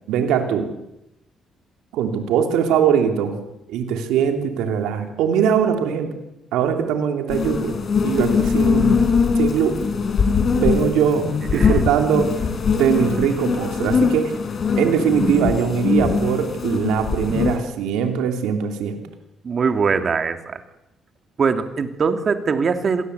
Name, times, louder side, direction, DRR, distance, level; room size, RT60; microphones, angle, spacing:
voice 1, 0.1-0.7 1.9-3.3 3.7-6.1 6.5-7.7 8.0-9.0 9.4-9.7 10.6-12.3 12.7-14.3 14.8-19.0, right 8 dB, 90° right, 5 dB, 3.1 m, -21 dB
sound 1, 7.3-17.6, left 5 dB, 50° left, 3.9 m, -21 dB
voice 2, 11.5-11.8 19.4-20.6 21.4-23.0, right 5 dB, 50° right, 7 dB, 2.8 m, -22 dB
26.0 x 18.0 x 8.3 m, 0.89 s
cardioid pair, 80°, 0 cm